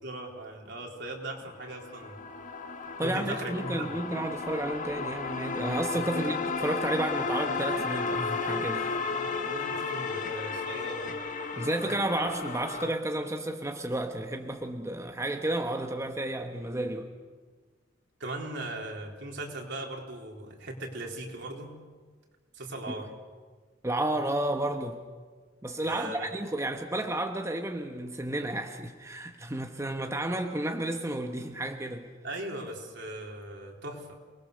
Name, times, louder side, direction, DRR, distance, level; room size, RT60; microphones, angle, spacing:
voice 1, 0.0-2.2 3.0-3.9 6.1-6.4 9.1-11.2 16.8-16.9 18.2-21.7 22.5-23.1 25.8-26.3 32.2-34.1, right 1 dB, 65° right, 0 dB, 4.1 m, -39 dB
sound 1, 1.6-12.9, left 4 dB, 45° left, 1.6 m, -33 dB
voice 2, 3.0-8.9 11.5-17.1 22.9-23.1 23.8-25.0 25.6-32.1, right 1 dB, 15° right, 4 dB, 1.1 m, -32 dB
28.5 x 20.5 x 6.8 m, 1.5 s
head